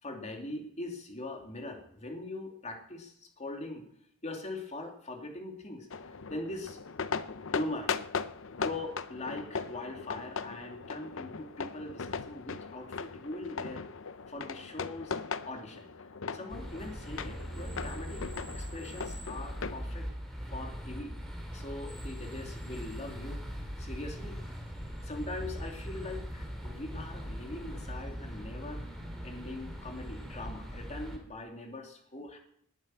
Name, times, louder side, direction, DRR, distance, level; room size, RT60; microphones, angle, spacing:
voice 1, 0.0-3.8 4.2-5.9 6.3-6.8 7.5-8.1 8.6-13.8 14.3-15.1 15.5-15.8 16.3-18.2 18.6-20.0 20.5-21.2 21.5-23.5 23.8-24.4 25.0-28.8 29.2-32.4, left 2 dB, 30° left, 3 dB, 2.9 m, -41 dB
sound 1, 5.9-19.8, left 5 dB, 60° left, 0.7 m, -39 dB
sound 2, 16.5-31.2, equal, ahead, 3.5 m, -40 dB
20.0 x 9.1 x 7.8 m, 0.69 s
head